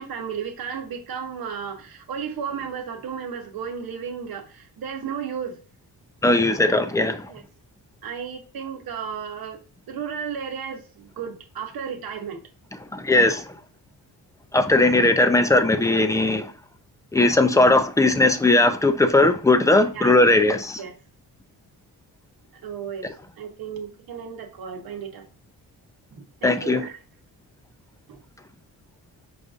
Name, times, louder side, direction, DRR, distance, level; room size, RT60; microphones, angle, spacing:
voice 1, 0.0-5.6 7.3-7.4 8.0-9.6 9.9-12.4 19.9-20.2 20.8-20.9 22.6-23.1 23.4-25.3 26.1-27.0 28.1-28.2, right 7 dB, 70° right, 1.0 m, -34 dB
voice 2, 6.2-7.3 12.9-13.5 14.5-16.5 17.1-20.8 26.4-26.8, left 2 dB, 10° left, 0.4 m, -18 dB
6.4 x 2.5 x 2.4 m
wide cardioid pair, 135°, 38 cm